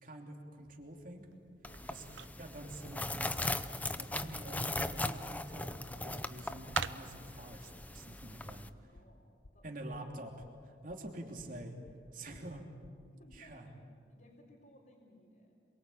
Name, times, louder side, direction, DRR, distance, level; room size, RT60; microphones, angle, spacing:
voice 1, 0.0-1.3 1.9-2.0 2.4-3.7 4.0-8.7 9.6-11.8 12.1-12.6 13.3-13.7, right 1 dB, 45° right, 1 dB, 3.0 m, -47 dB
sound 1, 0.6-7.4, right 7 dB, 85° right, 0.7 m, -48 dB
voice 2, 1.6-2.2 3.7-3.9 8.6-9.9 11.0-11.1 12.1-12.8 13.0-13.8 14.1-15.6, left 1 dB, 50° left, -4 dB, 4.0 m, -62 dB
sound 2, 1.6-8.7, left 2 dB, 10° left, 0.7 m, -39 dB
sound 3, 8.9-13.6, left 1 dB, 75° left, 0.9 m, -60 dB
27.5 x 23.0 x 8.6 m, 2.2 s
head